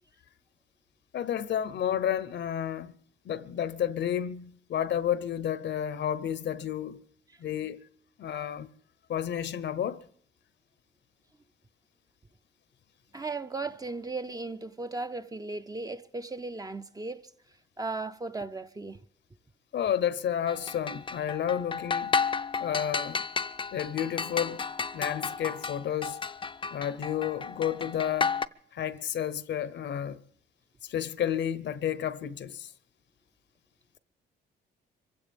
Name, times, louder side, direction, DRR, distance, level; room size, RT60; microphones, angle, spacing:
voice 1, 1.1-2.9 3.2-7.0 7.4-7.8 8.2-8.7 9.1-10.0 19.7-22.2 22.6-23.2 23.7-24.6 24.9-26.2 26.7-28.4 28.7-30.2 30.8-32.7, left 9 dB, 65° left, 0.8 m, -31 dB
voice 2, 13.1-17.2 17.8-19.0, right 3 dB, 20° right, 0.6 m, -36 dB
sound 1, 20.5-28.5, left 5 dB, 25° left, 0.5 m, -32 dB
25.0 x 16.0 x 3.5 m
cardioid pair, 90°, 20 cm